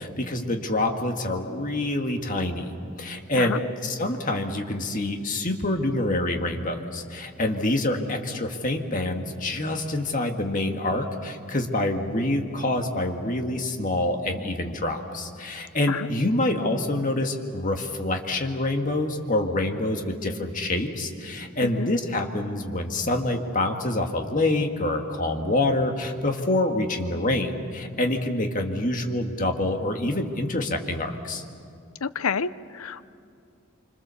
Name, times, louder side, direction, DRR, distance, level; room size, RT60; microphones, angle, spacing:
voice 1, 0.0-2.7 3.0-31.4, left 1 dB, 35° left, 3 dB, 1.8 m, -26 dB
voice 2, 32.0-33.1, left 5 dB, 85° left, 15 dB, 0.7 m, -29 dB
26.0 x 25.5 x 7.0 m, 2.4 s
head